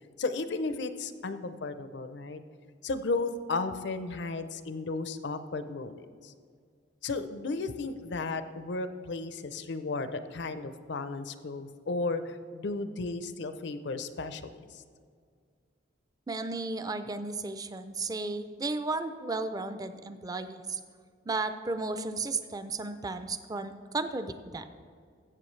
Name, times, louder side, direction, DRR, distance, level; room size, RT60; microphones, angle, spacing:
voice 1, 0.2-2.4 2.8-6.3 7.0-14.8, left 3 dB, 65° left, 11 dB, 0.6 m, -34 dB
voice 2, 16.3-20.8 21.3-24.7, right 3 dB, 20° right, 10 dB, 0.4 m, -34 dB
15.0 x 7.1 x 3.2 m, 2.1 s
head